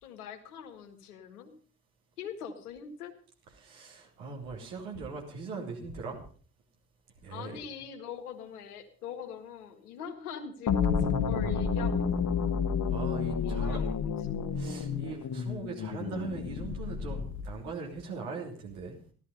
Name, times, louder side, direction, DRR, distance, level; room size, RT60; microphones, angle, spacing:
voice 1, 0.0-1.5 2.2-3.1 7.3-12.5 13.4-14.2, left 7 dB, 80° left, 6 dB, 1.7 m, -43 dB
voice 2, 3.6-6.2 7.2-7.6 12.9-13.8 14.5-19.0, right 4 dB, 75° right, 0 dB, 3.3 m, -40 dB
sound 1, 10.7-17.6, left 6 dB, 45° left, 1.7 m, -30 dB
14.5 x 12.0 x 5.3 m, 0.42 s
figure-of-eight pair, 40°, 44 cm